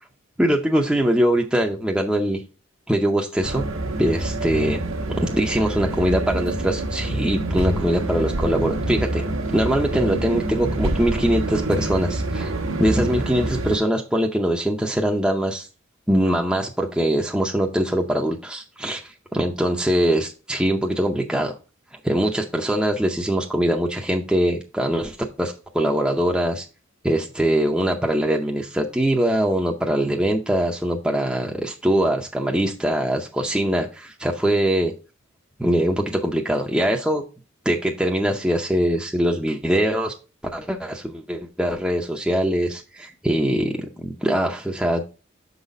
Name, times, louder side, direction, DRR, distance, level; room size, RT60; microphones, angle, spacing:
voice 1, 0.4-2.4 2.9-3.6 4.0-4.8 5.1-9.2 9.5-12.5 12.8-15.7 16.1-21.5 22.0-26.6 27.0-34.9 35.6-37.2 37.6-40.1 40.5-45.2, right 1 dB, 5° right, 0 dB, 0.6 m, -22 dB
sound 1, 3.4-13.8, right 1 dB, 75° right, 1.1 m, -26 dB
6.3 x 4.0 x 5.0 m, 0.32 s
head